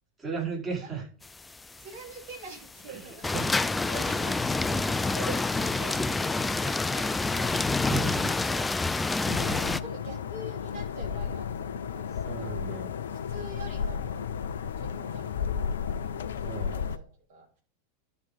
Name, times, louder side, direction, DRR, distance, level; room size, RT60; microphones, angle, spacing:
voice 1, 0.2-1.0 2.9-3.4 7.9-8.3 12.2-12.9 16.5-16.7, right 5 dB, 15° right, 4.9 m, -35 dB
sound 1, 1.2-1.3 1.5-1.8 2.1-2.2 2.6-2.9 3.2-9.8, left 3 dB, 10° left, 0.4 m, -27 dB
voice 2, 1.8-7.7 8.1-12.1 12.4-12.8 13.1-17.5, right 3 dB, 55° right, 3.6 m, -46 dB
sound 2, 9.3-17.0, left 7 dB, 65° left, 0.6 m, -33 dB
11.5 x 5.7 x 5.4 m
figure-of-eight pair, 90°, 0 cm